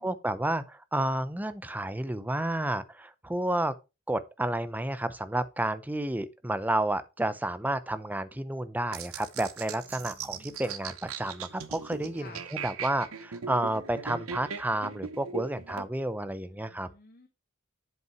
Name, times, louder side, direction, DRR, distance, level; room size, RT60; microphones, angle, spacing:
voice 1, 0.0-3.7 4.1-16.9, right 1 dB, 10° right, 0.5 m, -31 dB
sound 1, 8.9-15.9, right 6 dB, 75° right, 0.9 m, -39 dB
voice 2, 9.7-10.6 12.2-12.4 16.5-17.3, left 4 dB, 40° left, 1.0 m, -54 dB
7.9 x 5.5 x 4.5 m
head